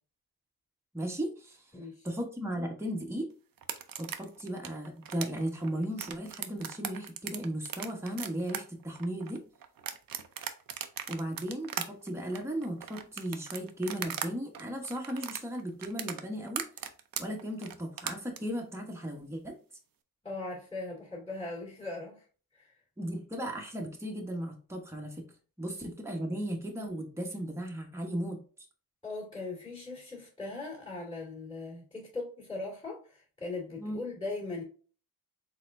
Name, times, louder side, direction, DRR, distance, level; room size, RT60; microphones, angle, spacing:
voice 1, 0.9-1.6 2.0-3.3 4.0-9.4 11.1-16.6 17.2-19.5 23.0-25.3 25.6-28.4 33.8-34.0, right 1 dB, 5° right, 1.0 m, -36 dB
voice 2, 1.7-2.1 20.2-22.2 22.5-22.8 29.0-34.6, left 3 dB, 10° left, 2.1 m, -39 dB
sound 1, 3.6-14.3 14.5-18.4, right 8 dB, 65° right, 0.6 m, -38 dB
4.2 x 3.8 x 2.6 m
wide cardioid pair, 85°, 37 cm